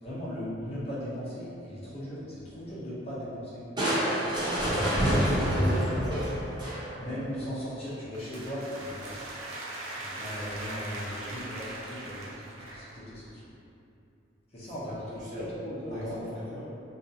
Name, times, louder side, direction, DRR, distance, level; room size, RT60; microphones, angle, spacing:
voice 1, 0.0-3.6 4.0-5.8 7.0-9.2 9.9-13.4 14.5-14.9 15.3-16.2, equal, 30° left, -9 dB, 0.5 m, -37 dB
Crushing, 3.8-7.1, equal, 20° right, 0.5 m, -27 dB
voice 2, 4.7-6.4 14.6-15.5 15.9-16.6, left 1 dB, 40° right, -11 dB, 0.9 m, -40 dB
sound 1, 7.9-13.0, right 1 dB, 85° right, 0.4 m, -40 dB
2.6 x 2.3 x 2.6 m, 2.7 s
head